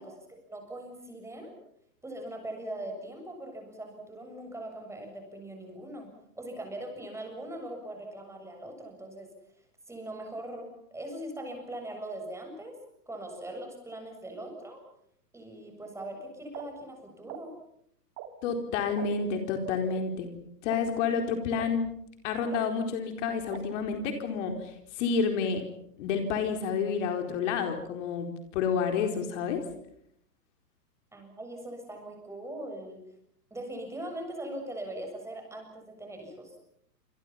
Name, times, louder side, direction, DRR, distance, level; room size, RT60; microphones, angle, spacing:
voice 1, 0.0-1.5 2.0-6.1 6.4-9.3 9.9-12.8 13.1-14.8 15.3-17.5 31.1-33.0 33.5-36.6, right 1 dB, 5° right, 3 dB, 7.2 m, -41 dB
sound 1, 16.5-16.6 17.3-17.4 18.2-18.3 19.0-19.1 19.9-20.0 20.7-20.8 21.6-21.7 22.5-22.6 23.5-23.6, right 16 dB, 30° right, 2.7 m, -40 dB
voice 2, 18.4-20.3 20.6-21.9 22.2-25.6 26.0-29.6, left 5 dB, 45° left, 5 dB, 4.4 m, -29 dB
28.5 x 27.0 x 5.8 m, 0.71 s
hypercardioid pair, 135°, 49 cm